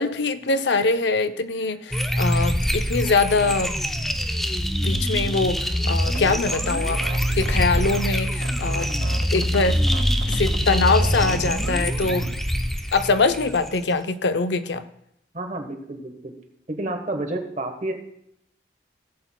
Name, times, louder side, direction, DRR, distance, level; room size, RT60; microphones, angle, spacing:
voice 1, 0.0-3.7 4.8-7.0 7.3-8.9 9.3-9.8 10.3-12.3 12.9-14.9, left 3 dB, 80° left, 11 dB, 0.6 m, -23 dB
sound 1, 1.9-13.9, equal, ahead, 0.5 m, -24 dB
sound 2, 5.8-12.5, right 4 dB, 85° right, 0.5 m, -35 dB
voice 2, 15.3-16.3 16.7-17.9, right 2 dB, 40° right, 5 dB, 1.2 m, -30 dB
16.5 x 8.0 x 2.2 m, 0.75 s
head